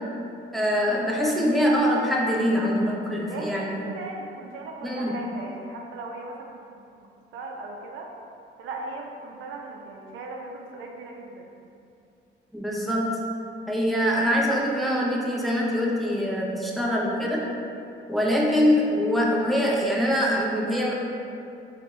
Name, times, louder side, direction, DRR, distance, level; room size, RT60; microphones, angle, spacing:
voice 1, 0.5-3.8 4.8-5.2 12.5-13.2 13.7-17.5 18.1-20.9, equal, ahead, -4 dB, 0.4 m, -24 dB
voice 2, 3.3-6.6 6.9-7.1 7.3-8.1 8.6-11.5, right 2 dB, 80° right, 1 dB, 0.4 m, -38 dB
3.4 x 2.1 x 3.0 m, 2.6 s
cardioid pair, 90°, 20 cm